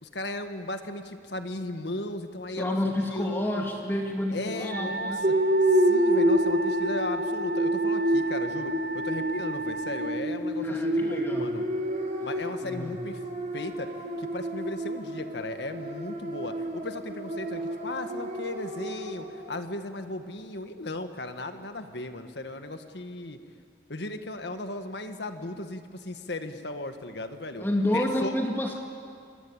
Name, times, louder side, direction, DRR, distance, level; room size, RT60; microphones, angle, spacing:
voice 1, 0.0-3.6 4.3-5.3 5.7-11.6 12.2-13.2 13.5-13.9 14.2-23.4 23.9-27.6 27.9-28.3, left 2 dB, 70° left, 7 dB, 1.7 m, -36 dB
voice 2, 2.6-5.2 10.6-11.5 12.6-13.0 27.6-28.8, left 1 dB, 10° left, 1 dB, 2.0 m, -29 dB
Wind instrument woodwind instrument, 4.7-10.2, right 2 dB, 60° right, 0.9 m, -34 dB
sound 1, 5.2-19.4, right 1 dB, 40° right, 3.4 m, -28 dB
28.0 x 22.5 x 8.9 m, 2.2 s
head